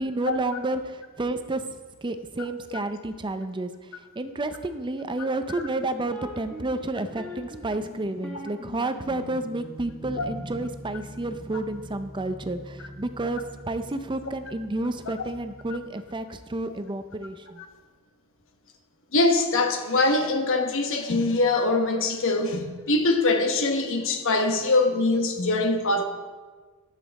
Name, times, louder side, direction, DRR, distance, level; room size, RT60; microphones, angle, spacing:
voice 1, 0.0-3.7 4.2-17.6, right 2 dB, 20° right, 9 dB, 0.5 m, -30 dB
sound 1, 6.1-15.8, equal, 5° left, 1.4 m, -43 dB
voice 2, 19.1-26.0, left 2 dB, 60° left, 5 dB, 1.1 m, -23 dB
11.5 x 8.3 x 4.1 m, 1.4 s
head